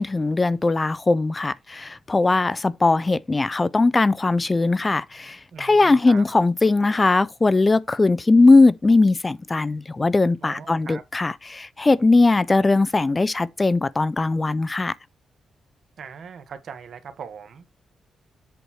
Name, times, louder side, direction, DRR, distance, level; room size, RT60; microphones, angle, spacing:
voice 1, 0.0-14.9, left 3 dB, 20° left, 0.4 m, -19 dB
voice 2, 5.5-6.2 10.4-11.0 16.0-17.7, right 6 dB, 60° right, 1.4 m, -40 dB
8.0 x 4.5 x 4.8 m
wide cardioid pair, 145°, 0 cm